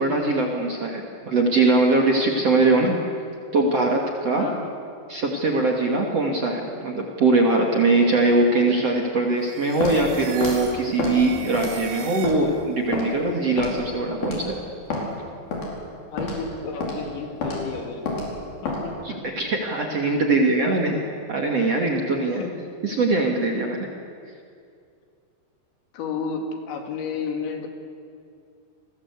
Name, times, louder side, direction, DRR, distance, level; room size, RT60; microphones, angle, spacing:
voice 1, 0.0-3.1 3.5-4.5 5.1-14.6 19.0-21.0 21.3-22.4 22.8-23.8, right 2 dB, 45° right, 1 dB, 2.4 m, -21 dB
voice 2, 4.4-4.7 16.1-18.2 18.6-19.2 21.9-22.1 22.4-22.5 25.9-27.7, left 5 dB, 75° left, 3 dB, 4.8 m, -32 dB
sound 1, 9.4-12.7, right 8 dB, 80° right, 4.4 m, -39 dB
Walk footsteps, 9.8-10.0 10.4-10.6 11.0-11.2 11.5-11.8 12.2-12.4 12.9-13.1 13.6-13.8 14.2-14.4 14.9-15.0 15.5-15.7 16.2-16.4 16.8-17.0 17.4-17.6 18.1-18.3 18.7-18.8, left 2 dB, 50° left, 6.4 m, -28 dB
29.5 x 20.5 x 8.3 m, 2.3 s
omnidirectional pair, 5.4 m